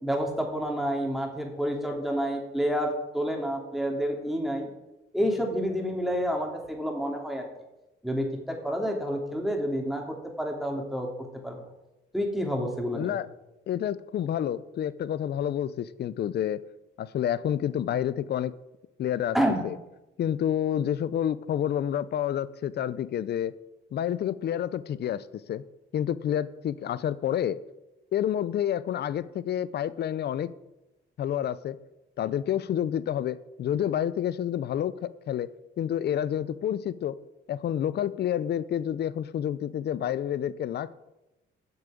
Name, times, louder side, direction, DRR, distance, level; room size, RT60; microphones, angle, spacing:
voice 1, 0.0-4.7 5.1-7.5 8.0-11.6 12.1-13.2 19.3-19.6, equal, ahead, 1 dB, 2.7 m, -29 dB
voice 2, 12.9-13.3 13.7-16.6 17.0-18.5 19.0-19.4 19.6-19.8 20.2-23.5 23.9-25.6 25.9-27.6 28.1-30.5 31.2-31.8 32.2-35.5 35.8-37.2 37.5-40.9, left 10 dB, 55° left, 17 dB, 0.6 m, -29 dB
8.6 x 6.8 x 8.6 m, 0.97 s
cardioid pair, 90°, 20 cm